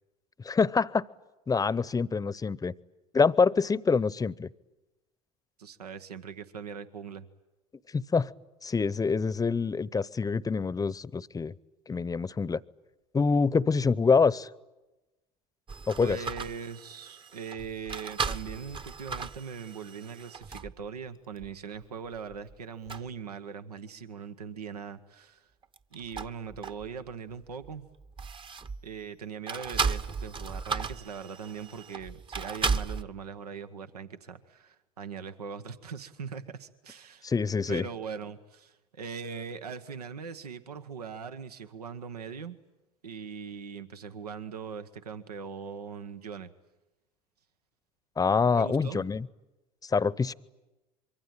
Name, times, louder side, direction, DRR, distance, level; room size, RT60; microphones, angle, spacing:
voice 1, 0.4-1.1 1.5-2.7 3.1-4.5 7.9-8.3 8.6-11.5 11.9-12.6 13.1-14.5 15.9-16.2 37.2-37.9 48.2-49.3 49.8-50.3, left 5 dB, 20° left, 21 dB, 0.8 m, -26 dB
voice 2, 5.6-7.3 16.0-25.5 25.9-27.8 28.8-37.3 37.7-42.6 43.0-46.5 48.5-49.0, right 6 dB, 90° right, 10 dB, 1.2 m, -41 dB
sound 1, 15.7-20.8 21.4-21.5 22.1-22.5 22.9-23.1 25.6-27.1 27.4-28.9 29.5-33.0, right 5 dB, 25° right, 1.0 m, -35 dB
25.0 x 23.5 x 8.9 m, 1.0 s
hypercardioid pair, 70°, 19 cm